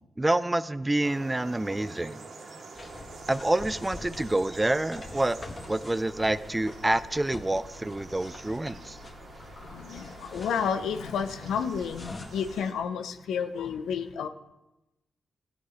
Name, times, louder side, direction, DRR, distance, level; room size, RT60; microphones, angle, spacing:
voice 1, 0.2-2.2 3.3-5.4 5.7-9.0, right 2 dB, 20° right, 15 dB, 0.6 m, -27 dB
sound 1, 1.0-12.7, right 3 dB, 65° right, 2.3 m, -47 dB
sound 2, 2.7-12.6, left 3 dB, 40° left, 1.5 m, -45 dB
voice 2, 9.6-14.3, left 7 dB, 80° left, 9 dB, 0.8 m, -31 dB
15.0 x 8.1 x 5.1 m, 0.97 s
supercardioid pair, 50°, 0 cm